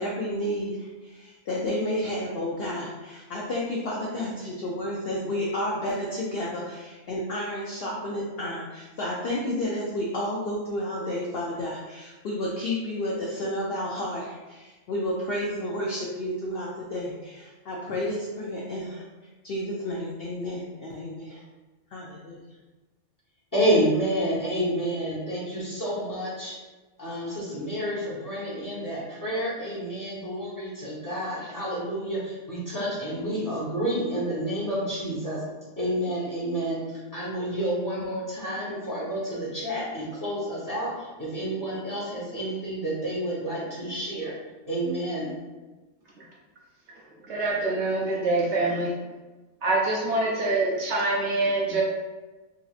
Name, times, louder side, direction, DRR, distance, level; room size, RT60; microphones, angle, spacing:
voice 1, 0.0-21.4 21.9-22.6, left 1 dB, 65° left, -4 dB, 0.6 m, -31 dB
voice 2, 23.5-26.6 27.0-35.4 35.8-44.3 44.7-45.4, right 1 dB, 15° left, -8 dB, 0.9 m, -29 dB
voice 3, 47.2-48.9 49.6-51.8, right 2 dB, 65° right, -3 dB, 0.8 m, -25 dB
4.0 x 2.6 x 2.4 m, 1.2 s
omnidirectional pair, 1.5 m